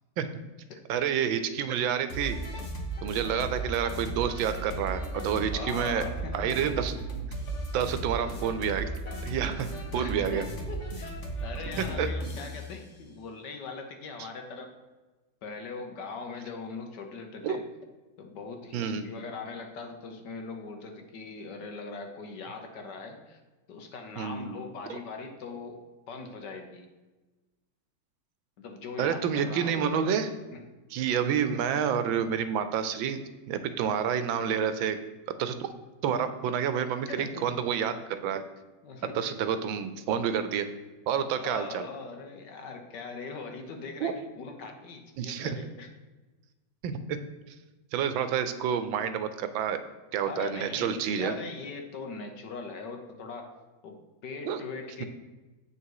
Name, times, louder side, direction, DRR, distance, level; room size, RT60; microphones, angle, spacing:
voice 1, 0.9-2.4 3.0-6.1 6.3-6.9 7.7-8.9 9.2-10.4 11.8-12.1 17.4-17.6 18.7-19.1 24.2-24.6 24.9-25.0 29.0-30.3 30.9-33.2 33.5-35.0 35.4-35.7 36.0-38.4 39.1-40.7 41.1-41.9 44.0-44.1 45.2-45.6 46.8-47.2 47.9-49.8 50.1-51.3 54.5-54.6, right 8 dB, 80° right, 11 dB, 1.4 m, -29 dB
sound 1, 2.1-12.7, right 2 dB, 40° left, 1.3 m, -35 dB
voice 2, 5.5-6.3 6.6-6.7 9.9-10.2 10.7-14.7 15.4-17.6 18.2-23.4 23.7-25.8 26.1-26.9 28.6-30.1 30.5-30.6 37.1-37.4 38.8-39.1 41.3-45.9 50.2-53.5 53.8-55.1, left 4 dB, 60° left, 4 dB, 1.5 m, -41 dB
8.1 x 5.9 x 4.7 m, 1.2 s
omnidirectional pair, 2.2 m